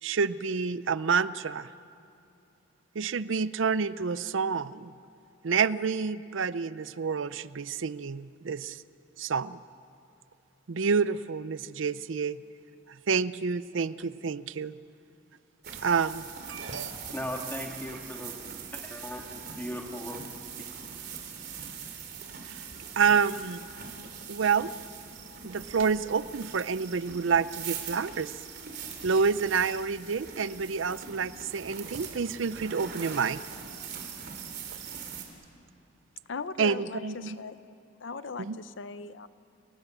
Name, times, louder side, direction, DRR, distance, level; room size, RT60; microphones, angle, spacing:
voice 1, 0.0-1.7 2.9-4.9 5.4-8.8 9.2-9.6 10.7-12.4 13.1-14.7 15.8-16.9 22.5-22.6 23.0-23.6 24.3-24.7 25.4-28.3 29.0-33.4 36.6-37.3 38.4-38.6, right 5 dB, 80° right, 16 dB, 0.6 m, -28 dB
sound 1, 15.6-35.2, right 6 dB, 55° right, 3.2 m, -42 dB
voice 2, 17.1-18.3 18.7-19.2 19.6-20.2, left 1 dB, 10° left, 1 dB, 2.2 m, -37 dB
voice 3, 36.3-37.6 38.0-39.3, left 4 dB, 75° left, 14 dB, 0.7 m, -39 dB
29.5 x 19.0 x 8.0 m, 2.6 s
head